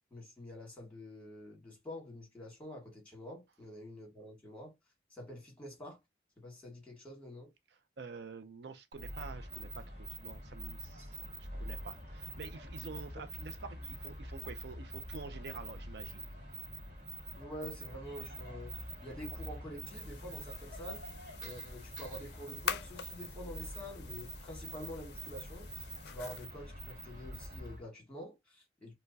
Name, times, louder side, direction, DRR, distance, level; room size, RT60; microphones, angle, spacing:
voice 1, 0.1-4.7 5.1-6.0 6.4-7.5 11.0-11.1 17.4-18.7 19.0-21.0 21.4-28.9, equal, 5° left, 1.7 m, -47 dB
voice 2, 8.0-11.2 11.6-16.2, right 4 dB, 75° right, 0.5 m, -48 dB
sound 1, 8.9-27.8, right 1 dB, 45° right, 1.7 m, -45 dB
sound 2, 19.9-26.5, left 8 dB, 70° left, 0.4 m, -45 dB
4.3 x 2.1 x 2.6 m
head